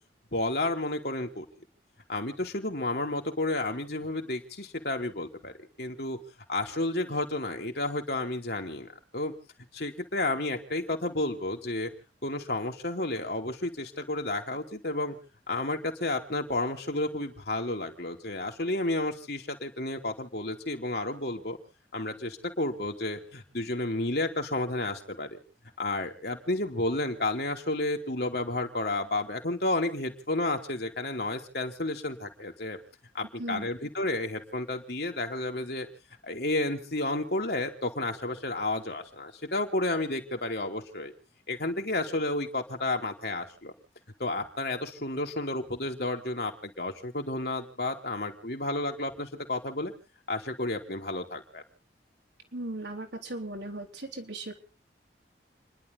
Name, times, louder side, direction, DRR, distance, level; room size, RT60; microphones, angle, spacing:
voice 1, 0.3-1.5 2.1-6.2 6.5-8.9 9.1-9.3 9.7-11.9 12.2-15.2 15.5-21.6 21.9-25.4 25.8-32.8 33.1-35.9 36.2-41.1 41.5-43.7 44.2-49.9 50.3-51.6, left 2 dB, 60° left, 3 dB, 3.0 m, -31 dB
voice 2, 52.5-54.5, right 2 dB, 70° right, 3 dB, 3.4 m, -37 dB
30.0 x 11.5 x 3.9 m, 0.37 s
head